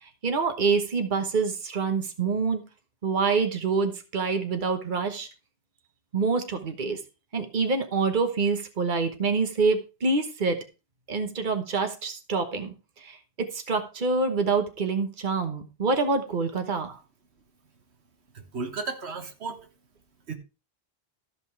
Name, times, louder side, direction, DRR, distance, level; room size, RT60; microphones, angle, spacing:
voice 1, 0.0-2.6 3.0-5.3 6.1-7.0 7.3-10.6 11.1-17.0, right 4 dB, 50° right, 7 dB, 1.3 m, -26 dB
voice 2, 18.3-19.7 20.3-20.4, right 4 dB, 90° right, 6 dB, 1.6 m, -34 dB
13.5 x 5.4 x 4.6 m, 0.30 s
omnidirectional pair, 1.1 m